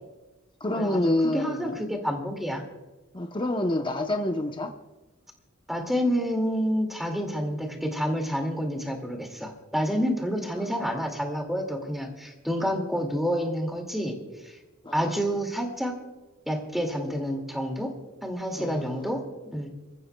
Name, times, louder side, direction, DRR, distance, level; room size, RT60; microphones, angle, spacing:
voice 1, 0.6-1.8 3.1-4.7 14.8-15.1 18.6-19.1, left 1 dB, 20° left, 4 dB, 0.8 m, -27 dB
voice 2, 1.3-2.6 5.7-14.2 14.4-14.6 14.9-16.0 16.5-17.9 18.2-19.7, equal, ahead, 3 dB, 2.2 m, -28 dB
27.0 x 15.0 x 2.3 m, 1.2 s
head